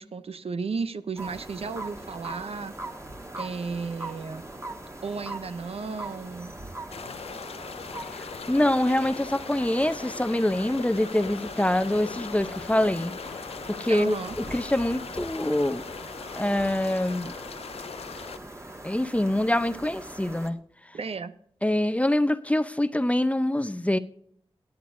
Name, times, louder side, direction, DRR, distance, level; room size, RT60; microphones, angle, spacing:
voice 1, 0.0-2.7 3.4-4.4 5.0-6.5 13.9-14.4 20.9-21.3, right 4 dB, 70° right, 12 dB, 0.6 m, -34 dB
sound 1, 1.2-20.5, right 2 dB, 25° right, 1.7 m, -41 dB
sound 2, 6.9-18.4, left 6 dB, 70° left, 0.4 m, -40 dB
voice 2, 8.1-13.1 13.7-14.1 14.5-15.9 16.3-17.3 18.8-20.6 21.6-24.0, left 1 dB, 10° left, 12 dB, 0.6 m, -25 dB
20.0 x 8.1 x 2.6 m, 0.64 s
cardioid pair, 40°, 11 cm